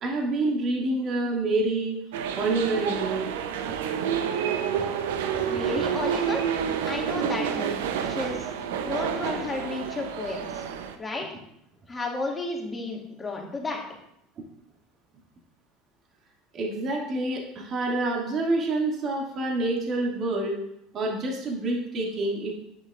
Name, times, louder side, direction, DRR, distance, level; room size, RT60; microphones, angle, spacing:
voice 1, 0.0-2.0 2.4-3.2 16.5-20.6 20.9-22.5, right 2 dB, 45° right, -1 dB, 2.2 m, -27 dB
sound 1, 2.1-10.9, right 8 dB, 75° right, 0.6 m, -29 dB
voice 2, 5.5-6.5 6.8-7.8 8.1-8.5 8.8-10.6 11.0-11.2 11.9-13.8, left 3 dB, 20° left, -1 dB, 2.2 m, -32 dB
9.6 x 8.5 x 2.5 m, 0.77 s
hypercardioid pair, 75°, 0 cm